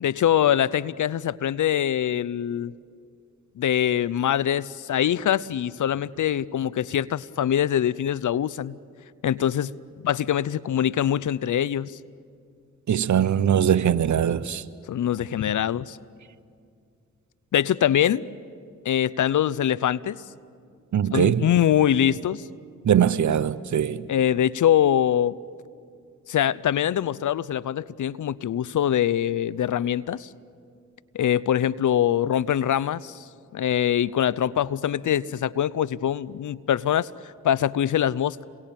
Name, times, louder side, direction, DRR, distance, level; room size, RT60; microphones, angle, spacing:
voice 1, 0.0-2.7 3.6-8.8 9.2-9.7 10.0-11.9 14.9-16.0 17.5-18.2 18.8-20.2 21.1-22.4 24.1-25.4 26.3-30.3 31.1-33.2 33.5-38.4, left 10 dB, 55° left, 0.7 m, -23 dB
voice 2, 12.9-14.6 20.9-21.5 22.8-24.1, right 9 dB, 55° right, 0.9 m, -21 dB
28.0 x 22.5 x 8.9 m
supercardioid pair, 45°, 35 cm